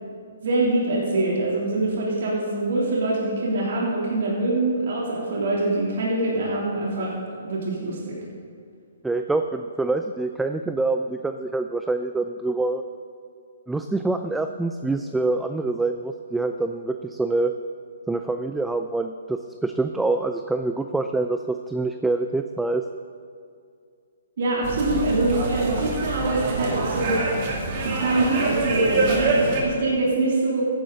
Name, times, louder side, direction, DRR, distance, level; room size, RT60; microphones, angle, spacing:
voice 1, 0.4-7.1 7.4-8.2 24.4-27.2 27.8-30.7, right 2 dB, 60° right, -4 dB, 3.1 m, -24 dB
voice 2, 9.0-12.8 13.7-17.5 18.1-22.8, right 2 dB, 5° right, 7 dB, 0.4 m, -25 dB
sound 1, 24.6-29.6, right 3 dB, 45° right, 2.4 m, -26 dB
14.0 x 10.5 x 4.0 m, 2.3 s
hypercardioid pair, 135°, 0 cm